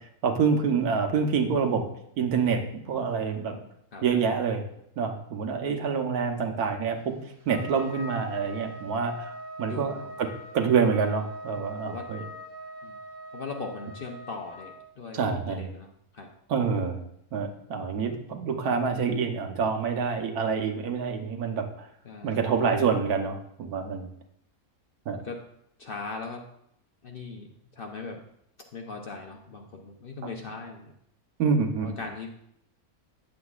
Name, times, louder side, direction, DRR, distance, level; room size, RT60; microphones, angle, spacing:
voice 1, 0.2-1.8 2.2-3.6 4.0-4.6 5.0-7.1 7.5-10.3 10.5-12.2 15.1-15.7 16.5-17.0 17.3-21.9 22.2-24.1 25.1-25.2 31.4-31.9, right 5 dB, 85° right, 4 dB, 1.4 m, -27 dB
voice 2, 3.5-4.0 9.7-10.1 11.8-12.1 12.8-13.0 13.3-16.3 22.0-22.3 25.2-25.4 25.8-26.4 27.0-28.2 28.7-30.9 31.7-32.3, left 4 dB, 50° left, 2 dB, 0.7 m, -39 dB
Trumpet, 7.5-14.8, right 1 dB, 35° right, 1.2 m, -42 dB
9.6 x 7.6 x 2.4 m, 0.73 s
omnidirectional pair, 1.6 m